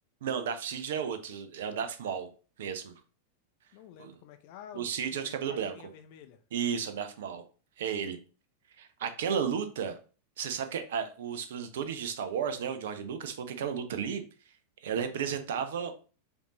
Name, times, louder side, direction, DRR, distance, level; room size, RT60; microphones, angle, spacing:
voice 1, 0.2-2.3 2.6-2.9 4.0-4.1 4.7-5.8 6.5-7.4 7.8-8.2 8.8-10.0 10.4-14.2 14.8-15.9, right 7 dB, 60° right, 0.6 m, -33 dB
voice 2, 3.7-6.4, left 9 dB, 45° left, 0.5 m, -50 dB
5.0 x 2.7 x 3.0 m
figure-of-eight pair, 90°, 0 cm